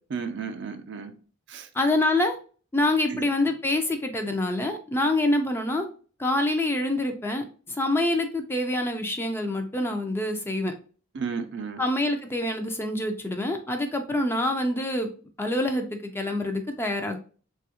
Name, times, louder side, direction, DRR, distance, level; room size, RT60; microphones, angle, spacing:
voice 1, 0.1-1.1 1.5-1.7 3.1-3.3 11.1-11.8, right 5 dB, 60° right, 0.5 m, -33 dB
voice 2, 1.7-2.4 2.7-5.9 6.2-10.7 11.8-15.1 15.4-17.2, left 1 dB, 10° left, 0.4 m, -26 dB
3.3 x 2.3 x 2.8 m
head